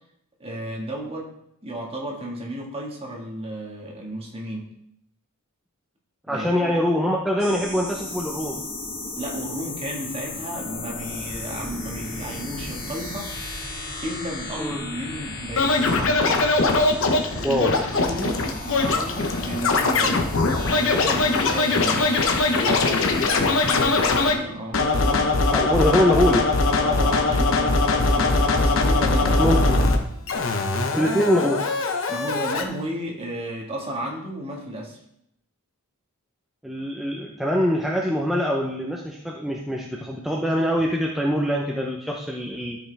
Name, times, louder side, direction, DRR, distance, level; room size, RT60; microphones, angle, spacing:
voice 1, 0.4-1.3 1.6-4.7 6.3-6.7 9.2-13.3 14.0-16.4 17.3-20.2 20.7-22.2 22.6-23.2 23.5-25.3 26.8-29.8 31.2-31.3 32.1-35.0, right 1 dB, 25° right, -1 dB, 1.7 m, -33 dB
voice 2, 6.3-8.6 14.6-14.8 16.2-16.5 17.4-17.9 25.5-26.5 29.4-29.8 30.9-31.6 36.6-42.8, equal, ahead, -2 dB, 0.7 m, -23 dB
sound 1, 7.4-24.3, left 2 dB, 45° left, 2.1 m, -35 dB
Scratching (performance technique), 15.6-24.4 24.7-30.0 30.3-32.6, left 3 dB, 60° left, 0.9 m, -21 dB
13.5 x 5.2 x 3.4 m, 0.76 s
head